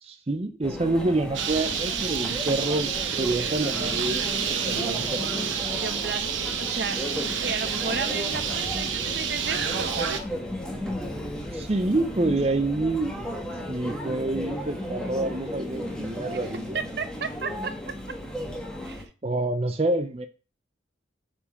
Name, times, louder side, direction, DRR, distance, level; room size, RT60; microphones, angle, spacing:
voice 1, 0.0-4.3 4.6-5.3 11.5-13.3 13.7-16.8 19.2-20.3, right 2 dB, 30° right, 8 dB, 0.5 m, -27 dB
Conversation / Chatter / Crowd, 0.6-19.0, equal, 5° left, 1.3 m, -35 dB
Bird, 1.3-10.2, right 7 dB, 75° right, 1.0 m, -29 dB
voice 2, 5.7-7.0 7.4-10.0 16.7-17.7 18.8-19.1, right 5 dB, 55° right, 10 dB, 0.9 m, -33 dB
7.0 x 4.5 x 5.3 m, 0.35 s
head